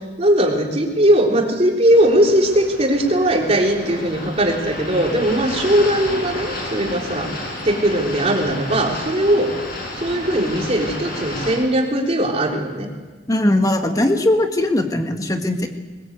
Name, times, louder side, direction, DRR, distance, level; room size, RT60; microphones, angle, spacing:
voice 1, 0.2-7.4 7.6-9.5 10.0-12.9, right 1 dB, 35° right, 0 dB, 3.8 m, -19 dB
sound 1, 1.9-11.6, left 1 dB, 60° left, 7.6 m, -31 dB
voice 2, 13.3-15.7, left 1 dB, 20° left, 5 dB, 1.9 m, -19 dB
21.5 x 20.0 x 8.3 m, 1.3 s
head